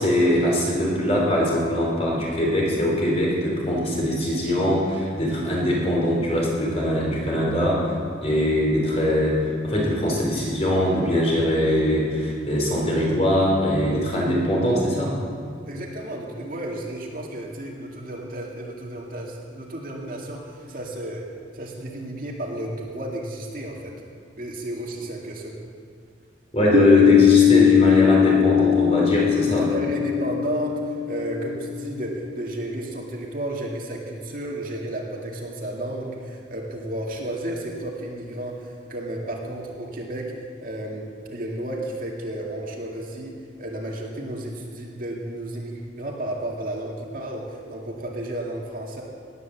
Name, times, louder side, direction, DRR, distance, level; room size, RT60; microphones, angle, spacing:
voice 1, 0.0-7.9 8.2-15.1 26.5-29.6, equal, 35° left, -3 dB, 4.2 m, -22 dB
voice 2, 15.6-21.2 21.5-23.9 24.3-25.5 29.4-40.3 40.6-43.3 43.6-49.0, right 1 dB, 45° right, -2 dB, 2.3 m, -32 dB
Piano, 26.7-32.1, left 10 dB, 85° right, 1.3 m, -20 dB
18.5 x 9.6 x 7.3 m, 2.2 s
head